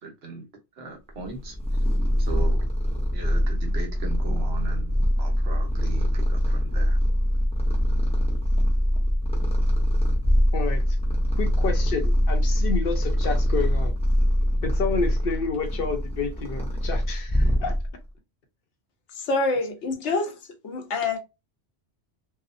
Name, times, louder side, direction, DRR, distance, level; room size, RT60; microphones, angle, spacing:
voice 1, 0.0-0.5 0.7-1.8 2.2-2.6 3.1-7.0, right 3 dB, 65° right, 1.0 m, -38 dB
Purr, 1.2-18.1, equal, 10° left, 0.4 m, -23 dB
voice 2, 10.5-11.0 11.4-13.9 14.6-17.8, left 4 dB, 60° left, 0.8 m, -29 dB
voice 3, 19.2-20.4 20.6-21.2, left 3 dB, 85° left, 1.1 m, -26 dB
2.7 x 2.0 x 2.5 m
omnidirectional pair, 1.1 m